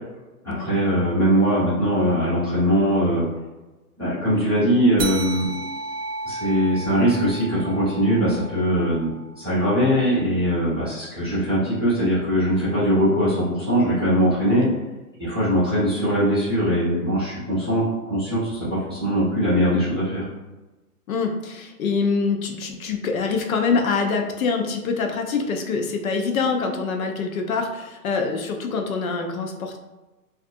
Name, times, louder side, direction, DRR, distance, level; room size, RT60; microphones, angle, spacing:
voice 1, 0.4-3.3 4.0-5.5 6.2-9.1 9.4-14.6 15.2-20.3, equal, 20° right, -13 dB, 0.4 m, -21 dB
sound 1, 5.0-9.9, right 2 dB, 85° right, 0.7 m, -34 dB
voice 2, 21.1-29.8, left 4 dB, 60° left, 3 dB, 0.5 m, -25 dB
2.5 x 2.4 x 2.6 m, 1.1 s
hypercardioid pair, 150°, 47 cm